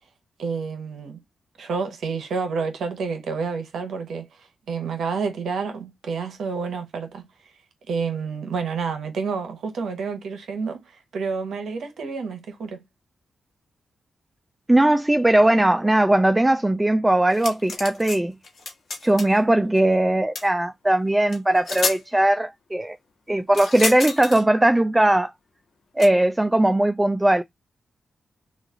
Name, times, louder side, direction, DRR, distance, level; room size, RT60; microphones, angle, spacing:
voice 1, 0.4-1.2 1.6-7.3 7.9-10.8 11.1-12.8, right 5 dB, 80° right, 0.9 m, -29 dB
voice 2, 14.7-18.3 19.0-23.0 23.3-25.3 26.0-27.4, right 1 dB, 15° right, 0.3 m, -19 dB
sound 1, 17.3-18.2 18.4-19.4 20.4-20.5 21.3-21.4 21.7-22.0 23.5-24.4 26.0-26.1, left 4 dB, 65° left, 1.2 m, -29 dB
3.1 x 2.4 x 3.6 m
cardioid pair, 60°, 0 cm